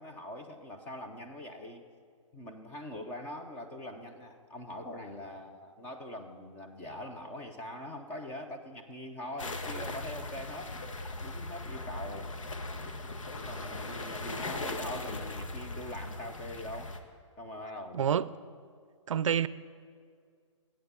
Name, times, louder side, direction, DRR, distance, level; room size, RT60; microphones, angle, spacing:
voice 1, 0.0-1.9 2.3-10.8 11.2-12.4 12.8-17.0 17.4-18.1, left 1 dB, 10° left, 0.5 m, -43 dB
sound 1, 9.4-17.0, left 2 dB, 80° left, 1.3 m, -39 dB
voice 2, 17.9-18.3 19.1-19.5, right 8 dB, 75° right, 0.5 m, -27 dB
13.0 x 8.7 x 6.9 m
hypercardioid pair, 165°, 16 cm